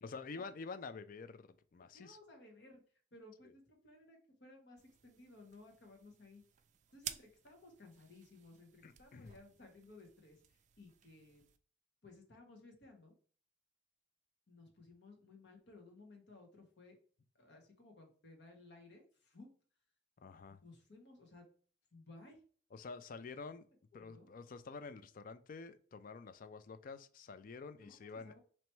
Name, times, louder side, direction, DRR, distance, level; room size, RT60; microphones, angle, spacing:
voice 1, 0.0-2.2 3.4-3.5 8.8-9.3 20.2-20.6 22.7-23.7 23.9-28.3, left 4 dB, 50° left, 11 dB, 0.4 m, -48 dB
voice 2, 1.9-2.8 3.1-6.4 6.9-11.4 12.0-13.1 14.5-16.9 17.4-19.5 20.5-21.4 21.9-22.4 23.9-24.3 27.8-28.4, left 2 dB, 70° left, 2 dB, 1.3 m, -58 dB
sound 1, 4.8-11.6, right 10 dB, 40° right, 0.3 m, -54 dB
3.1 x 3.0 x 4.4 m, 0.43 s
head